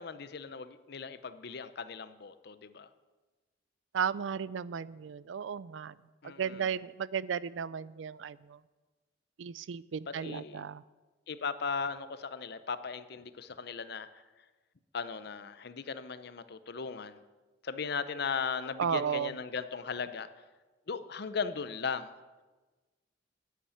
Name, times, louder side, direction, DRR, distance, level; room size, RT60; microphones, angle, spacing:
voice 1, 0.0-2.9 6.2-6.8 10.1-10.6 11.3-14.1 14.9-17.2 17.6-20.3 20.9-22.1, left 5 dB, 60° left, 13 dB, 0.6 m, -37 dB
voice 2, 3.9-5.9 6.4-8.4 9.4-10.8 18.8-19.3, right 7 dB, 80° right, 19 dB, 0.4 m, -34 dB
9.9 x 8.4 x 8.6 m, 1.3 s
head